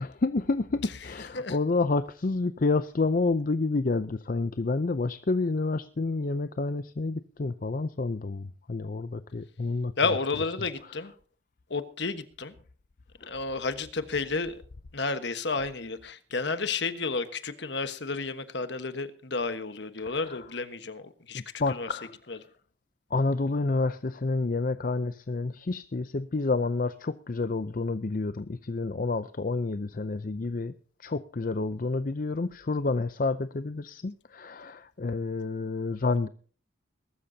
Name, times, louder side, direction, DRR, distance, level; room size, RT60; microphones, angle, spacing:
voice 1, 0.0-10.2 10.6-11.0 13.2-13.3 20.1-20.4 21.3-22.1 23.1-36.3, left 3 dB, 45° left, 12 dB, 0.5 m, -29 dB
voice 2, 10.0-11.1 11.7-12.5 13.3-14.6 14.9-21.4 21.7-21.9 22.3-22.4, left 4 dB, 60° left, 11 dB, 1.3 m, -31 dB
21.5 x 13.0 x 2.8 m, 0.42 s
head